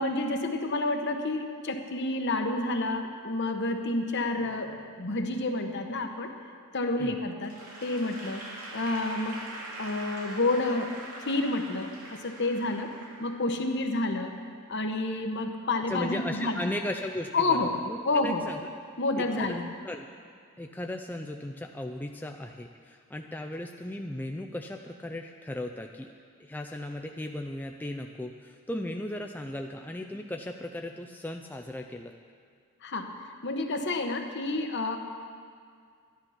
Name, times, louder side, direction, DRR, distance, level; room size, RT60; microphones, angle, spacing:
voice 1, 0.0-6.3 6.7-7.5 7.8-8.4 8.7-9.4 9.8-10.9 11.2-12.9 13.2-14.3 14.7-16.6 17.3-17.7 18.0-18.5 19.0-19.7 32.8-33.1 33.4-35.0, left 2 dB, 50° left, 5 dB, 1.1 m, -29 dB
Applause / Crowd, 7.4-13.7, right 1 dB, 85° right, 2.6 m, -43 dB
voice 2, 15.9-18.6 19.2-19.6 19.8-20.1 20.6-26.1 26.4-32.1, left 1 dB, 10° left, 3 dB, 0.4 m, -36 dB
13.0 x 10.5 x 5.7 m, 2.2 s
head